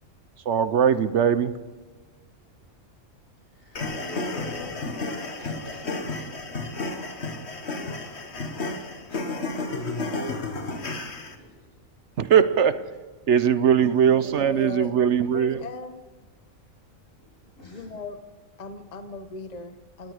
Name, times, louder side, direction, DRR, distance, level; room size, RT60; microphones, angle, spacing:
voice 1, 0.5-1.5 12.2-12.8 13.3-15.6, right 8 dB, 60° right, 13 dB, 1.1 m, -20 dB
voice 2, 3.5-9.6 10.4-10.9 11.3-11.7 13.7-13.9 17.6-17.9, left 1 dB, 85° left, -2 dB, 8.3 m, -48 dB
sound 1, 3.7-11.3, left 2 dB, 55° left, 1.9 m, -32 dB
voice 3, 14.4-14.9 15.3-16.0 17.7-18.2 18.6-20.1, left 3 dB, 35° left, 8 dB, 1.1 m, -37 dB
29.5 x 19.0 x 5.0 m, 1.3 s
omnidirectional pair, 1.4 m